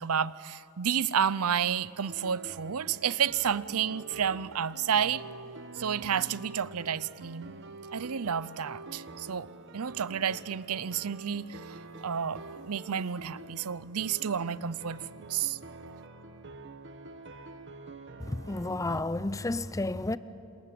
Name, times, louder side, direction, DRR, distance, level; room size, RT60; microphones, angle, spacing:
voice 1, 0.0-5.2 5.7-7.5 7.9-9.5 9.7-15.6, right 8 dB, 75° right, 0.6 m, -31 dB
sound 1, 2.1-19.0, right 3 dB, 55° right, 1.2 m, -47 dB
voice 2, 18.2-20.2, left 2 dB, 15° left, 0.6 m, -31 dB
28.5 x 26.5 x 7.6 m
head